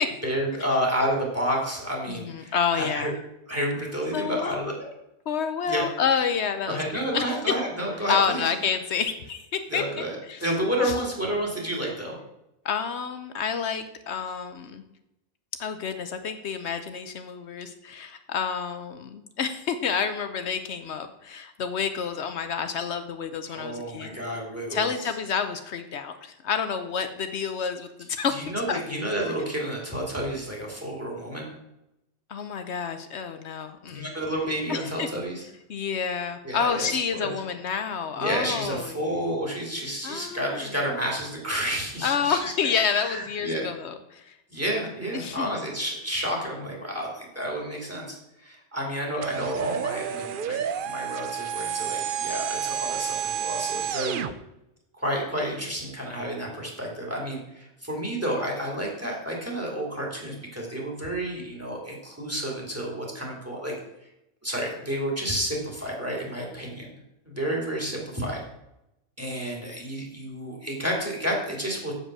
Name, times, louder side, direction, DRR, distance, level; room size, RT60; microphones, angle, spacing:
voice 1, 0.2-3.1 3.5-4.9 5.6-5.8 6.7-8.5 9.7-12.2 23.5-24.9 28.3-31.5 33.9-35.5 36.4-36.9 37.1-37.3 38.1-42.4 42.9-43.7 44.5-48.2 48.4-54.3 54.9-63.7 64.4-66.9 67.2-68.4 69.2-71.9, equal, 10° right, -2 dB, 2.8 m, -30 dB
voice 2, 2.1-3.1 4.1-4.8 5.3-7.3 8.1-9.8 10.3-10.4 10.8-10.9 12.6-14.8 15.6-24.2 24.7-28.3 28.7-28.8 32.3-34.1 34.7-35.1 35.7-39.0 40.0-40.7 42.0-44.3 45.1-45.5, left 6 dB, 75° left, 8 dB, 1.0 m, -29 dB
sound 1, 49.2-54.3, right 9 dB, 55° right, 0.7 m, -30 dB
7.9 x 7.7 x 6.2 m, 0.87 s
omnidirectional pair, 1.1 m